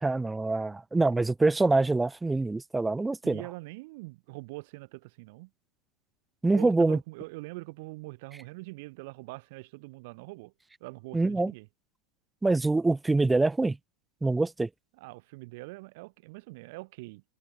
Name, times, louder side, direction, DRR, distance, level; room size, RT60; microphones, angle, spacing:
voice 1, 0.0-3.4 6.4-7.0 11.1-11.5 12.4-13.8 14.2-14.7, right 3 dB, 10° right, 0.9 m, -25 dB
voice 2, 3.2-5.5 6.6-10.5 10.8-11.7 14.9-17.2, right 25 dB, 60° right, 3.8 m, -43 dB
hypercardioid pair, 110°, 0 cm